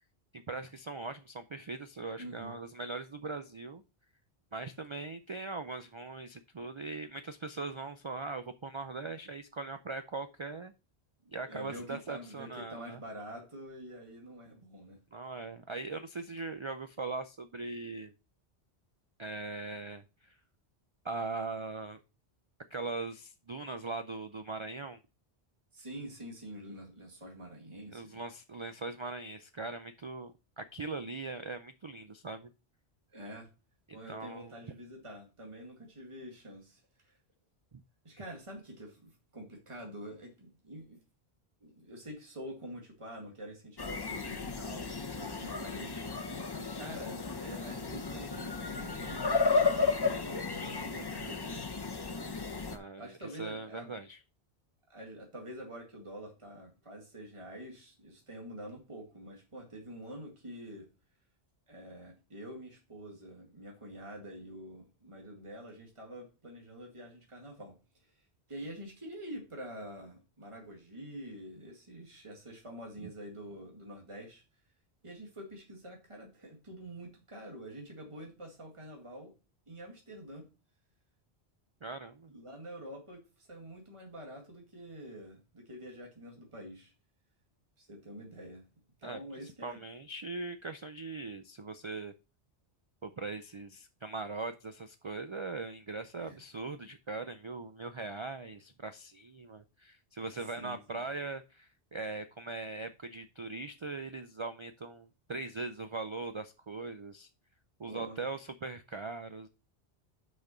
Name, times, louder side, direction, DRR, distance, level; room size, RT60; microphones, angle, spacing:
voice 1, 0.3-3.8 4.5-10.7 11.3-13.0 15.1-18.1 19.2-20.4 21.0-22.0 22.7-25.0 27.9-32.5 34.1-34.5 37.7-37.8 52.7-54.2 73.0-73.1 81.8-82.3 89.0-92.1 93.0-107.3 107.8-109.5, right 3 dB, 45° right, 0.4 m, -40 dB
voice 2, 2.2-2.6 11.2-15.0 25.7-28.2 33.1-33.5 33.9-37.2 38.0-41.0 41.6-51.6 53.0-53.9 54.9-60.9 61.7-67.7 68.0-68.1 68.5-74.4 75.0-79.3 79.7-80.4 82.3-86.9 87.8-88.6 89.0-89.8 96.2-96.4 100.6-101.1 107.9-108.3, equal, 30° right, 2.0 m, -47 dB
sound 1, 43.8-52.8, left 4 dB, 25° left, 0.7 m, -33 dB
5.9 x 5.2 x 6.5 m
omnidirectional pair, 1.1 m